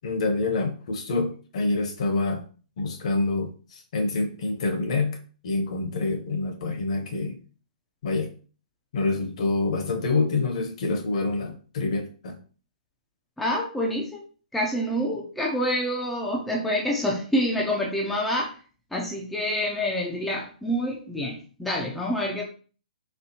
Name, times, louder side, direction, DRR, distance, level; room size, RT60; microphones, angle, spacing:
voice 1, 0.0-2.4 2.8-5.2 5.4-7.4 8.0-8.3 8.9-12.4, left 3 dB, 45° left, 6 dB, 0.7 m, -26 dB
voice 2, 13.4-14.2 14.5-18.6 18.9-22.4, equal, ahead, -4 dB, 0.4 m, -27 dB
4.3 x 3.3 x 2.8 m, 0.39 s
hypercardioid pair, 170°, 5 cm